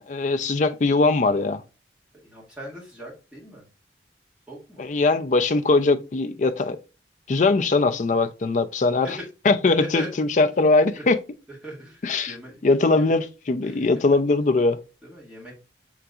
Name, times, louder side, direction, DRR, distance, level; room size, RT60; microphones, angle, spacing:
voice 1, 0.0-1.6 4.8-6.8 7.3-9.1 9.5-11.2 12.0-12.3 12.6-14.8, left 3 dB, 45° left, 0.4 m, -21 dB
voice 2, 2.1-3.7 4.5-4.8 9.0-9.1 9.8-10.1 11.0-11.1 11.5-12.6 12.9-13.1 13.6-13.9 15.0-15.6, right 1 dB, 5° right, 1.7 m, -40 dB
5.8 x 3.9 x 2.3 m
head